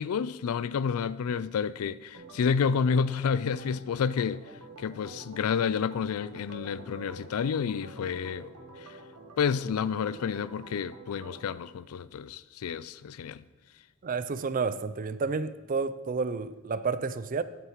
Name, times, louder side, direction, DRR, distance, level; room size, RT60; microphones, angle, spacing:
voice 1, 0.0-4.4 4.8-8.5 8.8-9.0 9.4-13.4, left 6 dB, 75° left, 0.4 m, -30 dB
Organ, 2.1-11.5, right 2 dB, 85° right, 1.2 m, -48 dB
voice 2, 14.0-17.4, right 4 dB, 40° right, 0.4 m, -30 dB
11.0 x 9.3 x 3.0 m
head